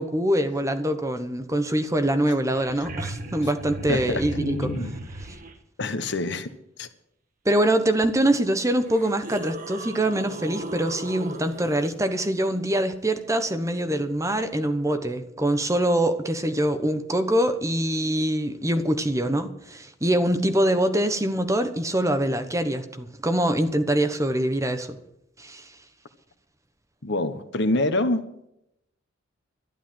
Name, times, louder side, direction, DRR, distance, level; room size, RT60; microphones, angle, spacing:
voice 1, 0.0-4.7 5.2-5.3 7.4-25.0 25.4-25.7, right 1 dB, 15° right, 8 dB, 1.1 m, -24 dB
sound 1, 2.4-5.5 8.0-8.1 8.8-11.9 14.4-14.5, right 1 dB, 45° right, 1.5 m, -37 dB
voice 2, 3.9-4.9 5.8-6.5 6.8-6.9 27.0-28.2, left 2 dB, 60° left, 10 dB, 1.3 m, -26 dB
12.5 x 11.0 x 7.7 m, 0.78 s
head